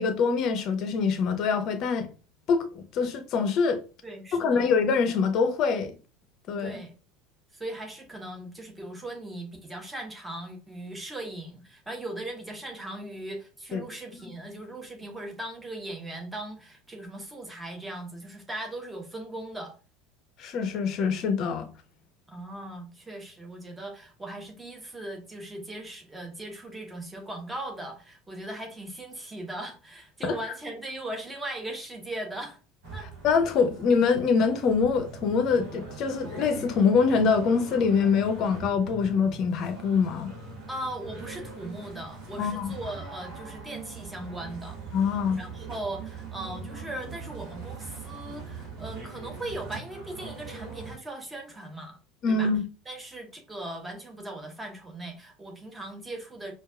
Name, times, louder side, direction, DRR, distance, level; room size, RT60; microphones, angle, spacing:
voice 1, 0.0-2.1 2.5-3.8 4.3-6.0 6.5-6.8 13.7-13.8 20.4-21.7 30.2-30.4 33.2-40.3 42.4-42.7 44.9-45.4 52.2-52.6, left 5 dB, 50° left, 0.6 m, -24 dB
voice 2, 4.0-4.7 6.6-6.9 7.5-19.8 22.3-32.6 32.9-33.1 40.7-44.8 45.4-52.0 52.3-52.5 52.9-56.5, right 1 dB, 10° right, 1.0 m, -39 dB
sound 1, 32.8-51.0, right 4 dB, 55° right, 1.4 m, -42 dB
4.5 x 2.3 x 2.3 m
figure-of-eight pair, 70°, 0 cm